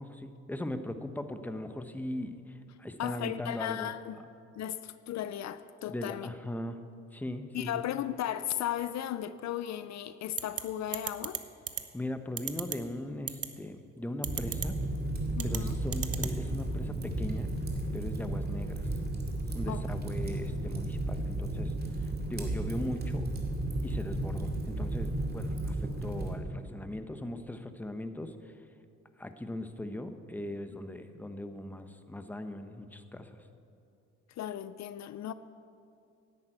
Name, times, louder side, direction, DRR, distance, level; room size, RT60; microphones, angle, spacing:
voice 1, 0.0-3.9 5.9-6.8 7.1-7.8 11.9-14.8 15.4-17.5 17.9-18.9 19.5-23.3 23.8-28.6 29.2-33.4, left 1 dB, 5° left, 9 dB, 0.8 m, -39 dB
voice 2, 3.0-4.2 4.6-6.3 7.5-11.4 15.4-15.8 19.7-19.8 34.4-35.3, left 11 dB, 65° left, 13 dB, 0.5 m, -35 dB
sound 1, 10.4-10.6 10.9-11.4 11.7-11.8 12.4-12.8 13.3-13.5 14.2-14.7 15.4-15.6 15.9-16.3, right 9 dB, 50° right, 1.0 m, -33 dB
Fire, 14.2-26.4, right 2 dB, 30° right, 2.4 m, -33 dB
10.5 x 8.7 x 9.0 m, 2.5 s
cardioid pair, 90°, 30 cm